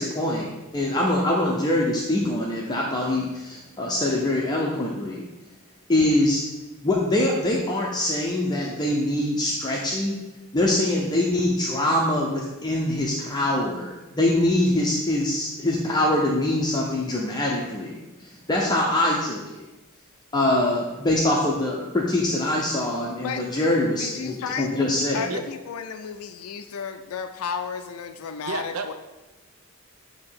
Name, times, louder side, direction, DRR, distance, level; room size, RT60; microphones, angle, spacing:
voice 1, 0.0-5.3 5.9-6.4 6.8-10.1 10.5-19.6 20.3-25.3, left 1 dB, 20° left, -2 dB, 0.7 m, -24 dB
voice 2, 23.1-23.4 24.0-24.9 25.1-28.9, left 6 dB, 80° left, 7 dB, 0.4 m, -33 dB
voice 3, 28.4-28.9, right 3 dB, 80° right, 6 dB, 0.7 m, -30 dB
8.6 x 2.9 x 5.7 m, 1.1 s
head